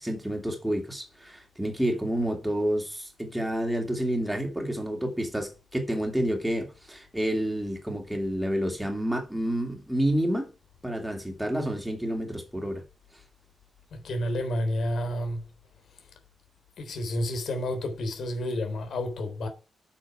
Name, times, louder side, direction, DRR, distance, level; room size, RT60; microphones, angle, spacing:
voice 1, 0.0-10.5 10.8-12.8, equal, 5° right, 2.7 m, -29 dB
voice 2, 13.9-15.4 16.0-16.1 16.8-19.5, left 1 dB, 65° left, 3.6 m, -30 dB
8.6 x 7.2 x 8.8 m
wide cardioid pair, 170°, 0 cm